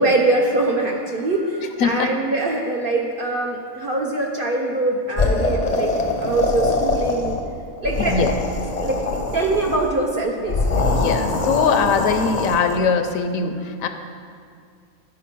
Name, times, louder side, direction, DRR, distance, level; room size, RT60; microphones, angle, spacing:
voice 1, 0.0-5.9 6.2-7.4 7.8-8.3 8.8-11.1, right 2 dB, 55° right, 0 dB, 0.6 m, -23 dB
voice 2, 1.8-2.1 8.0-8.3 10.9-13.9, left 5 dB, 70° left, 7 dB, 0.9 m, -21 dB
sound 1, 5.2-7.5 7.8-9.9 10.5-12.8, left 3 dB, 40° left, 0.6 m, -23 dB
9.9 x 4.9 x 5.9 m, 2.3 s
omnidirectional pair, 1.5 m